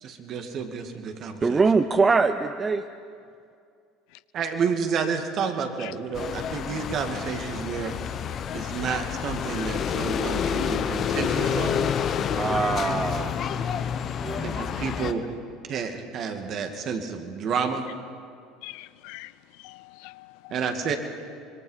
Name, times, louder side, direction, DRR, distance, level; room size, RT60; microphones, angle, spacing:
voice 1, 0.0-1.6 4.3-7.9 8.5-11.9 14.4-15.2 15.7-17.9 20.5-21.0, right 6 dB, 50° right, 2.3 m, -30 dB
voice 2, 1.4-2.9 12.4-13.3 14.2-14.5, right 4 dB, 25° right, 0.7 m, -23 dB
sound 1, 6.1-15.1, left 8 dB, 45° left, 1.2 m, -28 dB
voice 3, 12.5-13.1 18.6-19.3 19.6-20.6, left 20 dB, 65° left, 0.5 m, -42 dB
25.5 x 22.0 x 5.7 m
hypercardioid pair, 70°, 0 cm